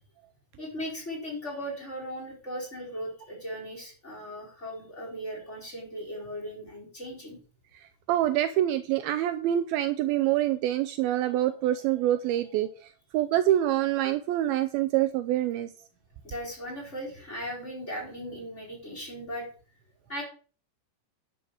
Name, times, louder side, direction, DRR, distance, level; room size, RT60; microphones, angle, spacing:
voice 1, 0.6-7.4 16.2-19.5 20.1-20.2, equal, 15° left, -2 dB, 3.8 m, -37 dB
voice 2, 8.1-15.7, right 13 dB, 90° right, 10 dB, 2.1 m, -26 dB
11.0 x 5.8 x 6.4 m, 0.38 s
omnidirectional pair, 5.0 m